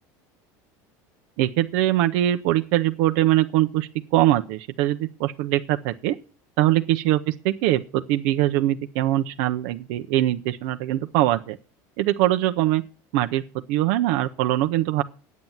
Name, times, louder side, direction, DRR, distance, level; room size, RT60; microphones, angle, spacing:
voice 1, 1.4-6.2 6.6-11.6 12.0-12.8 13.1-13.4 13.7-15.0, right 14 dB, 75° right, 7 dB, 0.8 m, -22 dB
9.6 x 7.3 x 9.2 m, 0.36 s
cardioid pair, 155°, 9 cm